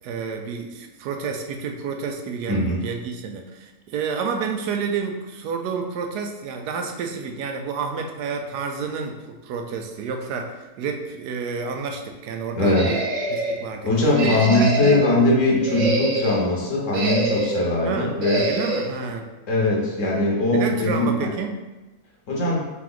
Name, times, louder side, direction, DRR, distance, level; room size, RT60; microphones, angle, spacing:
voice 1, 0.0-13.0 13.3-13.9 14.2-15.0 17.8-19.3 20.5-21.6, right 5 dB, 85° right, 4 dB, 1.2 m, -29 dB
voice 2, 2.5-2.8 12.5-12.9 13.8-18.4 19.5-21.3 22.3-22.7, left 2 dB, 60° left, -3 dB, 1.2 m, -20 dB
sound 1, 12.6-13.6 14.1-15.1 15.6-16.4 16.9-17.7 18.2-18.9, right 2 dB, 60° right, 1.2 m, -25 dB
3.8 x 3.0 x 3.8 m, 1.1 s
omnidirectional pair, 1.7 m